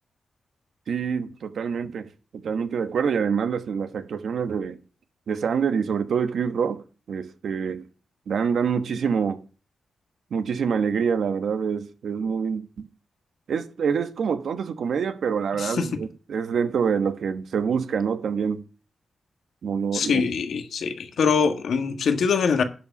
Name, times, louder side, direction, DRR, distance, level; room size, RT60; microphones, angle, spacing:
voice 1, 0.9-2.1 2.3-4.8 5.3-7.8 8.3-9.4 10.3-12.9 13.5-18.6 19.6-20.2, right 6 dB, 80° right, 1.1 m, -26 dB
voice 2, 15.6-16.0 19.9-22.6, left 5 dB, 80° left, 1.4 m, -23 dB
11.0 x 4.9 x 6.9 m
cardioid pair, 70°, 0 cm